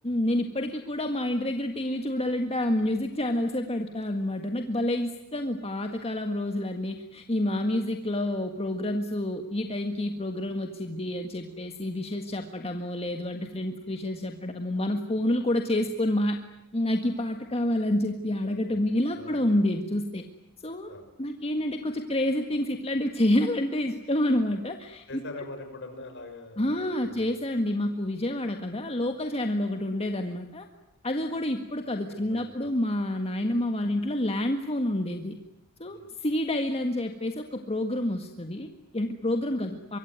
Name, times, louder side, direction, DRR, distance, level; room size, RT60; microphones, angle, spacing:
voice 1, 0.0-16.4 16.7-20.2 20.6-20.9 21.2-25.0 26.6-30.7 31.0-35.4 35.8-40.0, left 1 dB, 25° left, 5 dB, 1.7 m, -28 dB
voice 2, 18.7-19.7 20.9-21.1 25.1-27.7 31.2-31.5 32.1-32.5 35.9-36.1, left 2 dB, 55° left, 6 dB, 6.5 m, -44 dB
25.0 x 23.0 x 9.5 m, 0.92 s
head